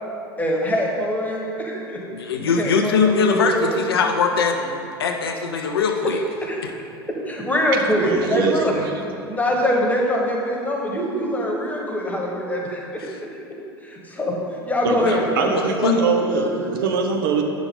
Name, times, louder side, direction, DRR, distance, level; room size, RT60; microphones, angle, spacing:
voice 1, 0.4-2.0 2.5-3.8 6.1-6.6 7.2-8.7 9.2-13.3 13.8-14.4 14.6-16.7, equal, 10° left, -1 dB, 1.4 m, -24 dB
voice 2, 2.1-6.2 6.6-6.7 13.0-13.2 15.0-15.2 15.6-15.9, left 5 dB, 70° left, 4 dB, 0.5 m, -21 dB
voice 3, 8.0-8.8 14.8-17.4, right 4 dB, 65° right, 3 dB, 0.9 m, -22 dB
8.5 x 6.0 x 3.8 m, 2.5 s
figure-of-eight pair, 80°, 13 cm